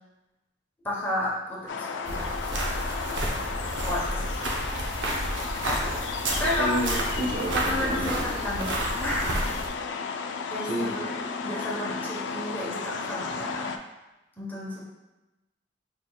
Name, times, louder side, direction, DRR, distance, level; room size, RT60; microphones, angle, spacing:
voice 1, 0.8-2.3 3.8-4.3 6.4-6.8 7.5-8.7 9.0-9.6 10.5-11.0 11.4-13.7 14.4-14.8, left 1 dB, 10° left, -6 dB, 1.0 m, -31 dB
sound 1, 1.7-13.8, left 5 dB, 75° left, 0.3 m, -34 dB
sound 2, 2.1-9.7, right 1 dB, 90° right, 0.8 m, -31 dB
voice 2, 6.6-8.2 10.7-10.9, equal, 50° right, -4 dB, 1.0 m, -30 dB
4.7 x 3.5 x 2.3 m, 1.0 s
head